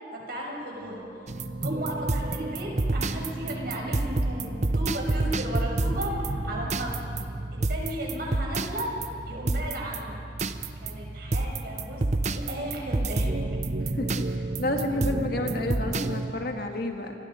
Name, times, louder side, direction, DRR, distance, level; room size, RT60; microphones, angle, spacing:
voice 1, 0.1-1.0 1.6-7.2 7.7-8.9 9.2-10.2 10.8-12.0 12.3-13.3, right 1 dB, 60° right, -1 dB, 5.8 m, -35 dB
sound 1, 0.8-6.2, right 1 dB, 25° right, 5.2 m, -53 dB
sound 2, 1.3-16.3, right 2 dB, 40° right, 0.8 m, -29 dB
sound 3, 3.9-9.6 9.9-10.0, right 2 dB, 85° right, 3.6 m, -51 dB
voice 2, 14.0-17.1, left 1 dB, 60° left, 3 dB, 2.1 m, -30 dB
28.0 x 22.0 x 5.3 m, 2.7 s
head